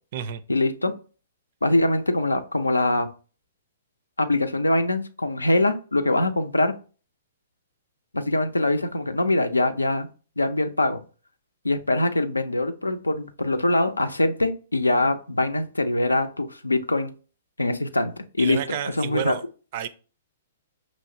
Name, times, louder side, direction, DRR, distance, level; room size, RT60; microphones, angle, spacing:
voice 1, 0.5-0.9 1.6-3.1 4.2-6.7 8.1-10.1 10.4-11.0 11.6-17.1 17.6-19.4, left 2 dB, 90° left, 0.5 m, -23 dB
voice 2, 18.4-19.4 19.7-19.9, right 9 dB, 50° right, 0.4 m, -30 dB
5.2 x 3.1 x 2.7 m
figure-of-eight pair, 115°, 0 cm